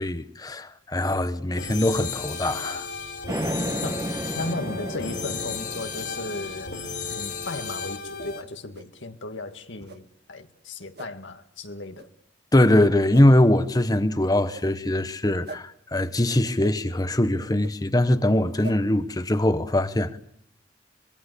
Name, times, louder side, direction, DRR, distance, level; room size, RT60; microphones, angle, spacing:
voice 1, 0.0-2.9 12.5-20.2, left 1 dB, 20° left, 1.0 m, -22 dB
sound 1, 1.6-8.4, left 5 dB, 65° left, 3.3 m, -34 dB
sound 2, 3.3-7.2, right 1 dB, 20° right, 1.2 m, -33 dB
voice 2, 3.8-6.8 7.1-12.1, left 2 dB, 85° left, 2.0 m, -35 dB
sound 3, 8.7-8.9 9.8-10.0 10.9-11.1 11.9-12.1 13.1-13.3 14.5-14.7 15.4-15.6 16.6-16.8 17.6-17.7 18.6-18.8, right 2 dB, 60° right, 1.6 m, -40 dB
25.0 x 22.0 x 8.3 m
head